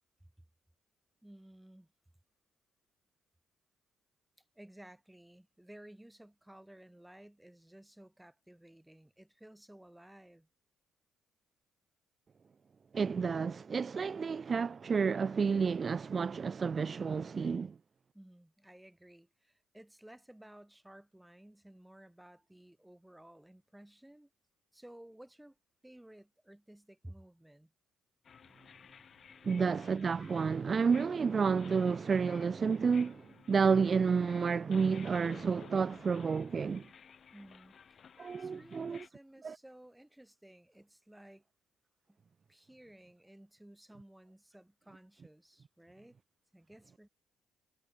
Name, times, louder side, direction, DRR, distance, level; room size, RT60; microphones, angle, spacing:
voice 1, 1.2-1.9 4.5-10.5 18.1-24.3 24.7-25.6 25.8-27.7 37.3-41.4 42.1-42.2 42.5-46.2 46.5-47.1, right 1 dB, 5° right, 2.5 m, -56 dB
voice 2, 12.9-17.7 29.4-36.9 38.2-39.0 39.4-39.6, right 5 dB, 40° right, 0.3 m, -30 dB
sound 1, 28.2-39.1, left 7 dB, 50° left, 2.7 m, -56 dB
hypercardioid pair, 50°, 0 cm